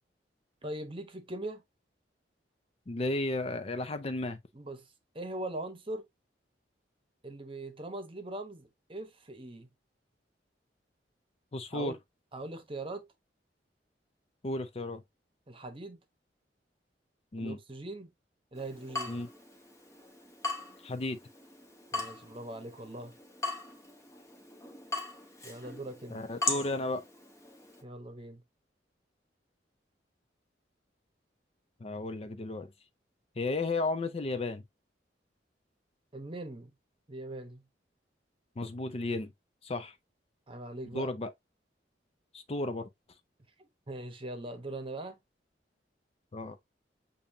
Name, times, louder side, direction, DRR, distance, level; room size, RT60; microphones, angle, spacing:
voice 1, 0.6-1.6 4.5-4.9 5.1-6.0 7.2-9.7 11.7-12.0 12.3-13.0 15.5-16.0 17.4-18.1 18.5-19.2 21.9-23.1 25.4-26.2 27.8-28.4 36.1-36.7 37.1-37.6 40.5-41.1 43.6-45.2, right 1 dB, 30° right, 1.0 m, -41 dB
voice 2, 2.9-4.4 11.5-12.0 14.4-15.0 17.3-17.6 19.1-19.3 20.8-21.2 26.1-27.0 31.8-32.7 33.4-34.6 38.6-39.3 39.6-40.0 40.9-41.3 42.3-42.9 46.3-46.6, left 2 dB, 35° left, 0.5 m, -33 dB
Water tap faucet / Drip, 18.5-27.8, left 3 dB, 15° left, 0.9 m, -40 dB
7.0 x 2.7 x 2.6 m
head